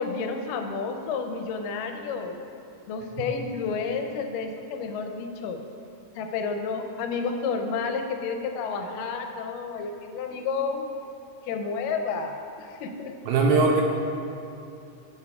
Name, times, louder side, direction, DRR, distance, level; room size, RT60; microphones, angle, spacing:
voice 1, 0.0-2.4 2.9-5.6 6.2-10.8 11.5-13.1, left 5 dB, 90° left, 5 dB, 2.2 m, -30 dB
voice 2, 13.3-13.8, right 3 dB, 75° right, 0 dB, 1.8 m, -20 dB
9.6 x 8.1 x 2.3 m, 2.7 s
omnidirectional pair, 3.8 m